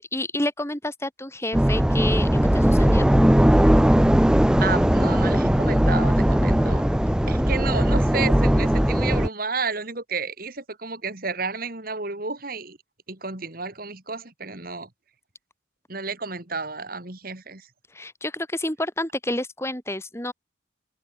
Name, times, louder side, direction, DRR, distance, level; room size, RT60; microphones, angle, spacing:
voice 1, 0.0-3.1 17.9-20.3, left 1 dB, 15° left, 7.3 m, -29 dB
sound 1, 1.5-9.3, equal, 5° right, 0.3 m, -19 dB
voice 2, 4.6-6.8 7.3-12.8 13.1-14.9 15.9-17.7, right 4 dB, 45° right, 2.9 m, -31 dB
head